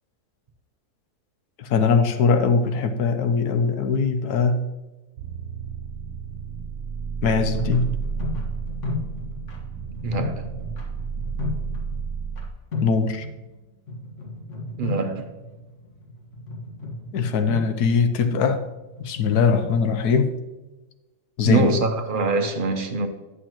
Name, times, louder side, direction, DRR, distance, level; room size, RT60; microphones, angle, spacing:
voice 1, 1.6-4.7 7.2-7.9 12.8-13.3 17.1-18.6 19.0-20.3 21.4-21.8, left 5 dB, 75° left, 1.3 m, -21 dB
sound 1, 5.2-12.5, right 5 dB, 85° right, 1.2 m, -32 dB
sound 2, 7.4-12.4 12.7-13.6 13.9-20.2, left 2 dB, 50° left, 1.7 m, -34 dB
voice 2, 10.0-10.5 14.8-15.3 21.4-23.1, right 3 dB, 45° right, 0.7 m, -24 dB
11.0 x 7.1 x 3.0 m
omnidirectional pair, 1.7 m